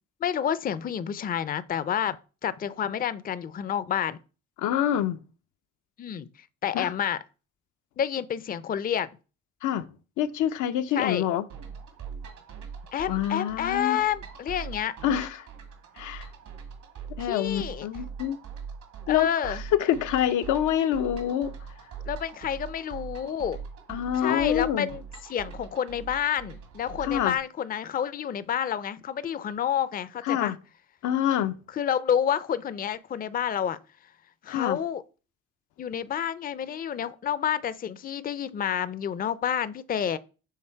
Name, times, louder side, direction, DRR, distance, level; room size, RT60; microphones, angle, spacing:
voice 1, 0.2-2.2 2.4-4.2 6.0-6.3 6.6-7.2 8.0-9.1 10.9-11.2 12.9-15.0 17.2-17.9 19.1-19.6 22.1-23.6 24.2-25.0 25.3-30.5 31.7-33.8 34.4-35.0 35.8-40.2, left 9 dB, 30° left, 0.4 m, -29 dB
voice 2, 4.6-5.2 6.7-6.9 9.6-9.9 10.2-11.4 13.1-14.0 15.0-15.5 16.0-16.3 17.2-18.4 19.1-21.5 23.9-24.9 27.0-27.4 30.2-30.6 31.0-31.6 34.5-34.8, left 10 dB, 80° left, 0.6 m, -26 dB
sound 1, 11.5-27.4, right 6 dB, 80° right, 1.8 m, -42 dB
6.5 x 3.4 x 4.4 m
cardioid pair, 90°, 30 cm